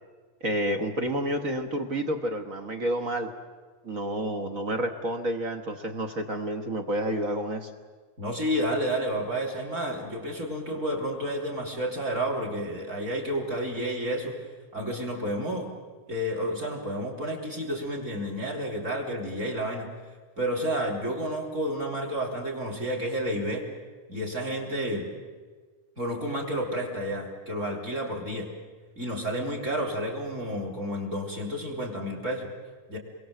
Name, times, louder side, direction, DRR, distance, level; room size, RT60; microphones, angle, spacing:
voice 1, 0.4-3.3 3.8-7.7, right 1 dB, 40° right, 6 dB, 1.2 m, -29 dB
voice 2, 8.2-14.4 14.7-15.7 16.1-19.9 20.4-23.7 24.1-25.1 26.0-28.5 29.0-32.5 32.9-33.0, equal, 25° right, 2 dB, 4.1 m, -30 dB
29.0 x 23.0 x 7.9 m, 1.5 s
omnidirectional pair, 3.5 m